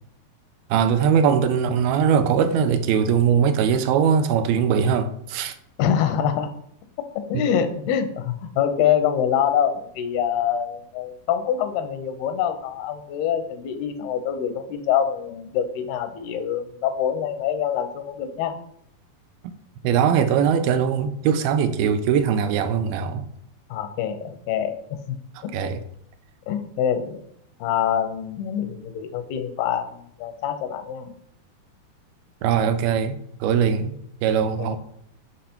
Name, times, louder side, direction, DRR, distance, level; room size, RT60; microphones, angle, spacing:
voice 1, 0.7-5.5 7.3-7.4 19.8-23.3 25.5-25.8 32.4-33.9 34.2-34.8, right 7 dB, 85° right, 2.4 m, -21 dB
voice 2, 5.8-6.5 7.2-18.6 23.7-24.8 25.4-25.5 26.5-27.2 27.6-31.1 34.6-34.8, left 9 dB, 85° left, 2.8 m, -25 dB
8.1 x 5.5 x 4.4 m
omnidirectional pair, 4.4 m